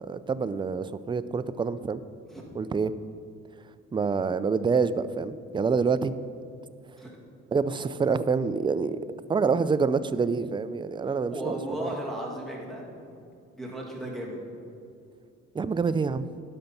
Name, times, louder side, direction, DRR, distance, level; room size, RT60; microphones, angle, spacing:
voice 1, 0.0-2.0 2.6-2.9 3.9-6.1 7.5-9.0 9.3-11.9 15.5-16.3, right 5 dB, 15° right, 13 dB, 0.3 m, -27 dB
voice 2, 11.1-13.0 13.5-14.4, right 1 dB, ahead, -2 dB, 2.3 m, -36 dB
12.0 x 5.4 x 5.8 m, 2.5 s
cardioid pair, 90°, 30 cm